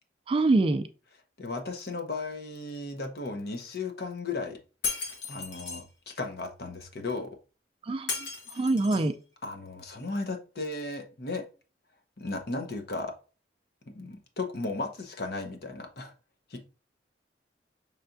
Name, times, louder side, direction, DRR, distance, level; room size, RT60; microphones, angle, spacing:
voice 1, 0.3-0.9 7.9-8.1 8.6-9.1, right 2 dB, 30° right, 0.3 m, -24 dB
voice 2, 1.4-4.6 5.3-7.4 8.5-8.6 9.4-11.4 12.2-13.1 13.9-16.1 16.5-16.6, left 3 dB, 60° left, 0.9 m, -35 dB
Shatter, 4.8-5.8 8.1-9.1, left 4 dB, 85° left, 1.3 m, -35 dB
5.7 x 3.3 x 2.6 m
head